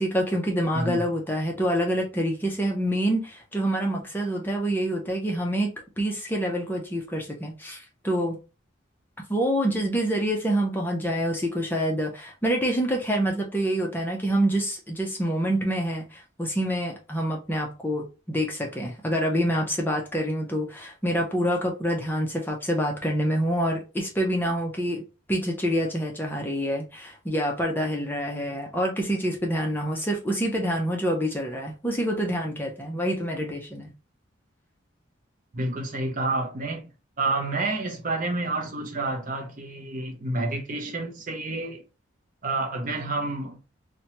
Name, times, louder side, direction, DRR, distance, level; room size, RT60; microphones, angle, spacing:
voice 1, 0.0-5.7 6.0-8.4 9.3-25.0 25.3-33.9, equal, 10° left, 0.5 m, -26 dB
voice 2, 0.7-1.1 35.5-36.8 37.2-41.8 42.4-43.6, right 2 dB, 40° right, 0.5 m, -29 dB
2.8 x 2.2 x 2.8 m
head